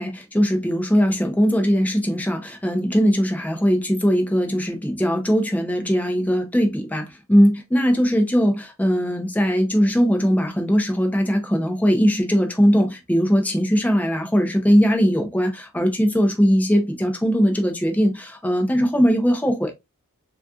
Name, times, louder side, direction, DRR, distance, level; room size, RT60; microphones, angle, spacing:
voice 1, 0.0-19.7, equal, 5° left, 0.5 m, -20 dB
4.0 x 2.3 x 2.3 m
head